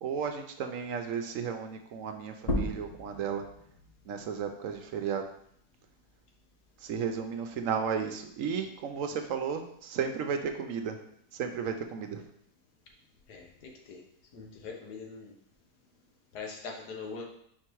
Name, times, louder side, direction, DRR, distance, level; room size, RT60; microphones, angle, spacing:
voice 1, 0.0-3.4 4.1-5.3 6.8-11.0 11.3-12.2, right 6 dB, 70° right, 6 dB, 0.8 m, -34 dB
sound 1, 2.4-7.6 8.0-9.8, left 1 dB, 35° left, 0.6 m, -39 dB
voice 2, 13.3-14.0 14.3-15.3 16.3-17.2, left 4 dB, 80° left, 1 dB, 1.6 m, -42 dB
4.7 x 4.6 x 4.5 m, 0.70 s
omnidirectional pair, 1.7 m